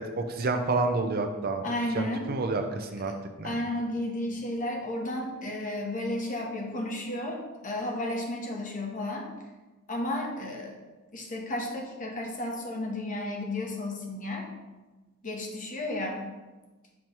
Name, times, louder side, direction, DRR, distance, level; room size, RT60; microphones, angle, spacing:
voice 1, 0.0-1.7 1.9-3.1 3.4-3.6, right 3 dB, 45° right, 5 dB, 0.5 m, -29 dB
voice 2, 1.6-2.3 3.4-9.3 9.9-10.8 11.1-14.4 15.2-16.3, left 1 dB, 40° left, 0 dB, 1.0 m, -33 dB
6.0 x 3.1 x 5.3 m, 1.2 s
head